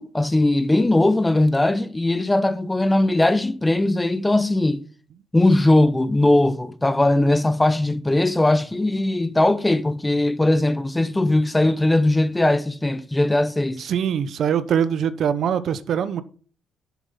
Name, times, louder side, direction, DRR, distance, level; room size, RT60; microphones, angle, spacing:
voice 1, 0.0-4.8 5.3-13.9, left 2 dB, 15° left, 0.7 m, -19 dB
voice 2, 13.8-16.2, right 8 dB, 65° right, 0.7 m, -23 dB
7.3 x 7.1 x 5.6 m
cardioid pair, 90°, 0 cm